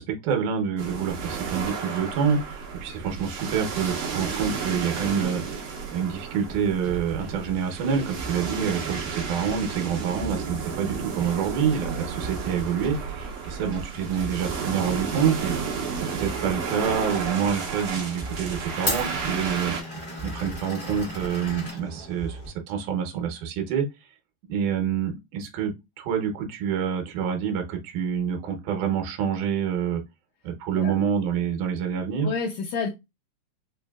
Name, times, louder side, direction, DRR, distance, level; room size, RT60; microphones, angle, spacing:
voice 1, 0.0-15.6 16.0-19.7 20.2-22.4 22.7-23.9 24.5-30.0 30.4-32.3, right 7 dB, 80° right, 2.3 m, -27 dB
sound 1, 0.8-19.8, right 5 dB, 65° right, 2.0 m, -33 dB
sound 2, 6.5-22.5, right 4 dB, 40° right, 0.9 m, -41 dB
Glass, 16.2-22.5, left 1 dB, 30° left, 0.9 m, -37 dB
voice 2, 32.2-32.9, left 5 dB, 80° left, 1.8 m, -29 dB
5.3 x 2.6 x 2.3 m
omnidirectional pair, 3.6 m